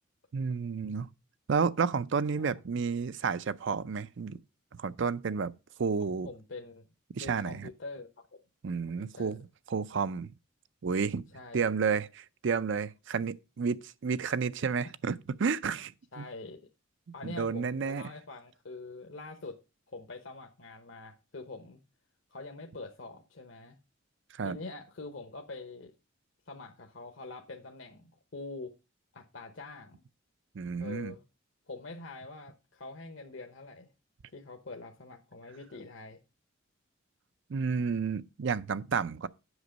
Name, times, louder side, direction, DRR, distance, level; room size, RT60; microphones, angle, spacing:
voice 1, 0.3-1.1 1.5-4.4 4.7-5.5 5.8-6.3 7.2-7.7 8.6-10.3 10.8-11.3 11.5-16.3 17.2-18.0 24.4-24.6 30.5-31.1 37.5-39.3, right 5 dB, 65° right, 0.5 m, -31 dB
voice 2, 6.2-6.8 7.2-8.1 8.9-9.4 11.3-11.6 16.1-16.6 17.1-19.6 19.9-21.8 22.3-23.8 24.4-25.9 26.5-28.7 29.1-30.0 30.8-31.2 31.7-33.9 34.3-36.2, left 3 dB, 65° left, 1.0 m, -44 dB
8.1 x 6.1 x 5.1 m
head